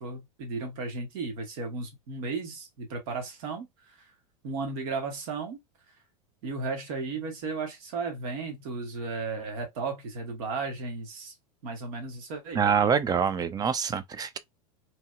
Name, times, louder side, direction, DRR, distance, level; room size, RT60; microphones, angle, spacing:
voice 1, 0.0-4.1 4.4-5.6 6.4-11.3 11.6-12.6, right 4 dB, 60° right, 1.3 m, -35 dB
voice 2, 12.6-14.4, right 7 dB, 20° right, 0.4 m, -25 dB
2.9 x 2.6 x 2.3 m
hypercardioid pair, 100°, 19 cm